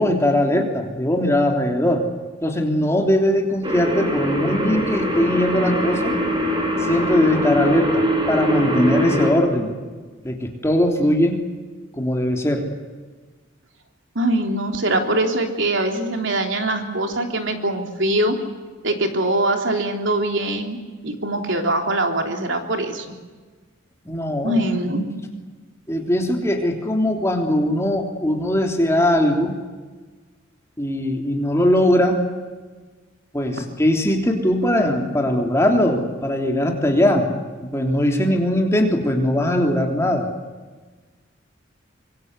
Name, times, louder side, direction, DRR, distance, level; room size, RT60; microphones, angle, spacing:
voice 1, 0.0-2.0 2.4-6.2 6.8-9.8 10.2-11.4 11.9-12.6 24.0-24.6 25.9-29.6 30.8-32.3 33.3-37.3 37.6-40.3, left 1 dB, 15° left, 2 dB, 3.4 m, -20 dB
sound 1, 3.6-9.3, equal, 25° right, 5.1 m, -22 dB
voice 2, 14.1-18.4 18.8-20.8 21.0-23.1 24.4-25.0, right 1 dB, 65° right, 3 dB, 3.4 m, -22 dB
25.5 x 24.5 x 8.2 m, 1.4 s
head